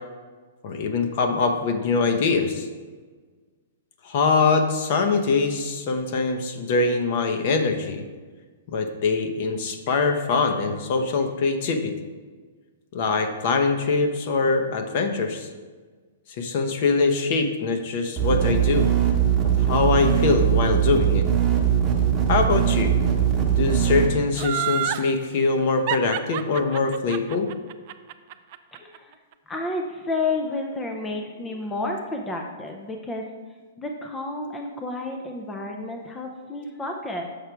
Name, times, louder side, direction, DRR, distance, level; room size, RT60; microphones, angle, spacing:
voice 1, 0.6-2.7 4.0-8.0 8.7-11.9 12.9-15.5 16.4-18.9 19.6-21.3 22.3-22.9 23.6-27.5, left 4 dB, 45° left, 6 dB, 0.8 m, -23 dB
sound 1, 18.2-24.1, right 9 dB, 15° right, 1.0 m, -21 dB
Laughter, 24.3-25.1 25.9-29.0 29.3-29.4, right 12 dB, 45° right, 0.4 m, -28 dB
voice 2, 28.7-29.1 29.5-33.3 33.8-37.2, left 2 dB, 10° left, 2 dB, 0.5 m, -30 dB
6.6 x 4.7 x 4.5 m, 1.4 s
hypercardioid pair, 155°, 0 cm